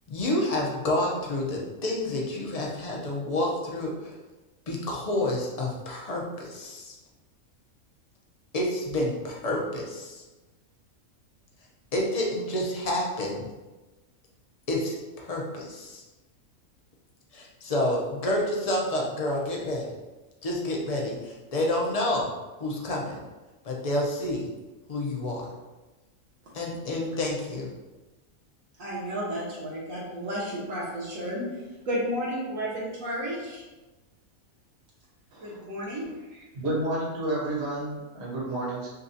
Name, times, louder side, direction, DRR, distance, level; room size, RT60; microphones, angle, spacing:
voice 1, 0.1-4.1 4.7-6.9 8.5-10.2 11.9-13.5 14.7-16.0 17.3-19.9 20.4-22.3 22.6-23.2 23.6-24.5 24.9-25.5 26.5-27.7, left 1 dB, 35° left, -2 dB, 0.7 m, -29 dB
voice 2, 28.8-31.5 31.9-33.6 35.4-36.0 36.3-36.4, equal, 65° right, -5 dB, 1.6 m, -32 dB
voice 3, 35.3-35.6 36.5-38.9, right 1 dB, 50° right, -6 dB, 1.4 m, -30 dB
6.3 x 2.4 x 2.7 m, 1.1 s
omnidirectional pair, 1.5 m